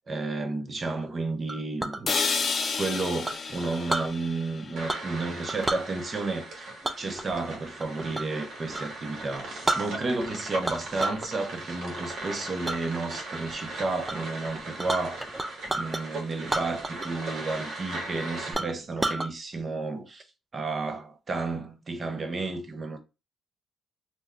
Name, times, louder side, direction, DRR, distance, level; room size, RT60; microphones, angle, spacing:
voice 1, 0.1-2.1 2.8-6.7 7.0-15.3 15.7-20.2 20.5-23.0, right 3 dB, 35° right, 0.7 m, -32 dB
Chink clink, 1.5-2.0 3.2-4.1 4.9-5.2 5.5-5.8 6.8-8.4 8.7-8.9 9.3-9.4 9.6-10.3 10.6-11.3 11.7-12.0 12.6-12.8 13.3-13.7 14.1-14.2 14.4-16.0 16.4-17.2 17.5-17.6 18.1-18.2 18.5-19.3, right 2 dB, 15° right, 0.4 m, -31 dB
sound 1, 2.1-6.1, left 4 dB, 40° left, 0.6 m, -32 dB
sound 2, 4.8-18.5, right 2 dB, 65° right, 1.1 m, -39 dB
2.5 x 2.2 x 3.6 m
cardioid pair, 90°, 0 cm